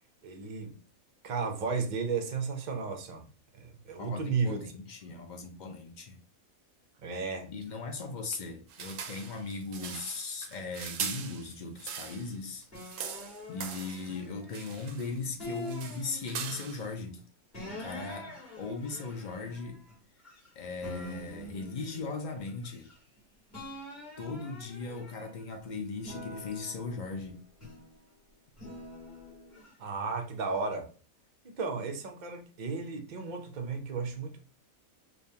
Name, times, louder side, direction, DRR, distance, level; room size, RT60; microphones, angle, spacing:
voice 1, 0.2-0.8 1.2-3.3 3.5-4.6 7.0-7.5 29.8-30.9 31.4-34.4, right 5 dB, 50° right, 0.5 m, -34 dB
voice 2, 4.0-6.2 7.4-12.7 13.5-17.2 17.6-19.8 20.6-22.9 24.2-27.4, left 4 dB, 65° left, 0.4 m, -38 dB
sound 1, 8.7-12.3 12.6-14.2 14.5-15.1 15.4-16.9, right 7 dB, 70° right, 0.9 m, -41 dB
sound 2, 12.7-14.9 15.4-16.7 17.5-20.5 20.8-23.2 23.5-25.5 26.0-28.0 28.6-29.7, left 1 dB, 30° left, 2.2 m, -46 dB
5.2 x 2.3 x 2.7 m
omnidirectional pair, 1.5 m